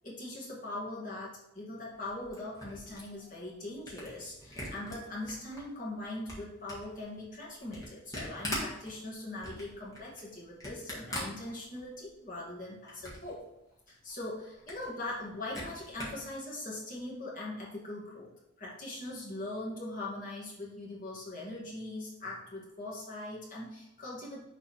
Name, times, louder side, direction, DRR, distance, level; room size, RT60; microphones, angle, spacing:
voice 1, 0.0-13.4 13.9-18.3 18.6-24.4, left 2 dB, 40° left, -5 dB, 2.2 m, -41 dB
Camera, 1.9-5.6 6.0-12.1 12.4-13.4 13.7-13.8 14.0-14.1 14.5-16.3, left 1 dB, 15° left, 1.8 m, -43 dB
6.6 x 3.9 x 4.6 m, 0.89 s
head